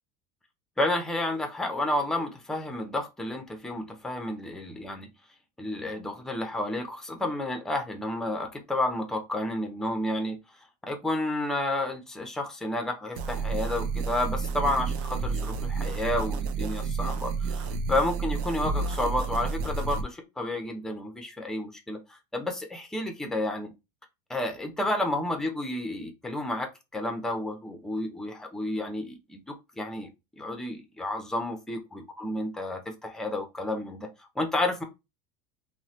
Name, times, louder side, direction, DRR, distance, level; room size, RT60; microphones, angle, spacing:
voice 1, 0.8-5.1 5.6-10.4 10.8-23.7 24.3-30.1 30.4-34.1 34.4-34.8, left 1 dB, 5° left, 0.5 m, -31 dB
sound 1, 13.2-20.0, right 4 dB, 60° right, 0.4 m, -30 dB
3.0 x 2.1 x 2.8 m
cardioid pair, 160°, 11 cm